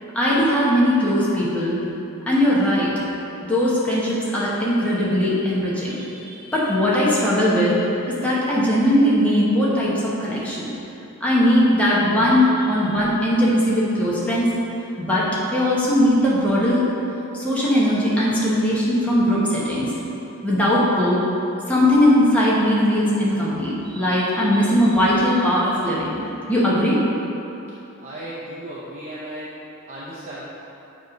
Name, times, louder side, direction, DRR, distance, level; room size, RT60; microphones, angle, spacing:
voice 1, 0.1-1.8 2.3-2.9 3.4-7.7 8.1-10.7 11.2-14.5 15.0-15.2 15.5-16.8 17.3-19.9 20.4-21.2 21.7-26.1 26.5-27.0, equal, 5° left, -8 dB, 1.0 m, -19 dB
voice 2, 28.0-29.5 29.9-30.4, right 1 dB, 35° right, -7 dB, 0.6 m, -35 dB
7.3 x 3.1 x 5.2 m, 2.9 s
head